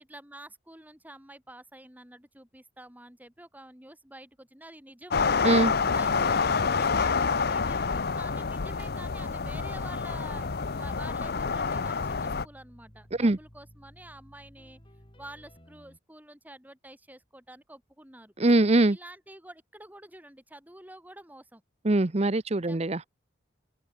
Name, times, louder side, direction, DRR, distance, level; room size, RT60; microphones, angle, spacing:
voice 1, 0.0-5.4 5.9-6.5 6.8-14.8 15.2-18.3 18.9-21.6 22.7-22.8, right 1 dB, 10° right, 7.1 m, -49 dB
sound 1, 5.1-12.4, left 5 dB, 55° left, 0.7 m, -27 dB
sound 2, 7.4-16.0, equal, 25° left, 5.0 m, -55 dB
voice 2, 18.4-19.0 21.8-23.0, right 2 dB, 35° right, 0.8 m, -22 dB
head